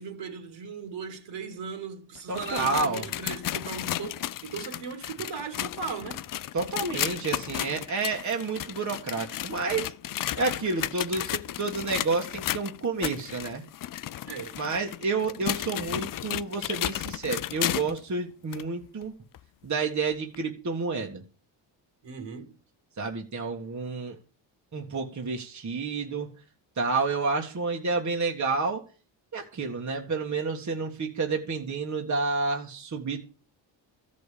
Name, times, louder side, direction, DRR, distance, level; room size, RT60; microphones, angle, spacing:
voice 1, 0.0-6.3 14.2-14.6 22.0-22.5, right 5 dB, 65° right, 3.0 m, -38 dB
sound 1, 2.2-18.0 18.5-18.6 19.3-19.4 20.3-20.4, left 13 dB, 45° left, 0.5 m, -34 dB
voice 2, 2.3-3.1 6.5-9.9 10.3-13.6 14.6-19.1 19.6-21.2 23.0-24.2 24.7-26.3 26.8-28.8 29.3-33.2, right 4 dB, 35° right, 1.9 m, -30 dB
13.5 x 5.5 x 8.5 m
cardioid pair, 85°, 47 cm